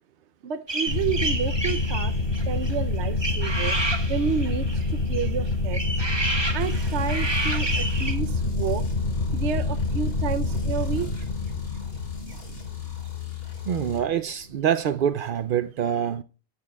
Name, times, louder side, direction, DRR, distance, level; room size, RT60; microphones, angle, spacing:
voice 1, 0.4-2.1 2.5-3.8 4.1-5.8 6.2-8.8 9.3-11.1, right 7 dB, 60° right, 0.8 m, -30 dB
sound 1, 0.7-8.1, right 2 dB, 20° right, 1.2 m, -30 dB
sound 2, 0.9-14.1, left 2 dB, 45° left, 2.2 m, -27 dB
sound 3, 6.6-14.0, left 11 dB, 75° left, 3.6 m, -37 dB
voice 2, 13.7-16.2, right 9 dB, 90° right, 0.4 m, -25 dB
13.5 x 8.4 x 2.3 m
omnidirectional pair, 1.5 m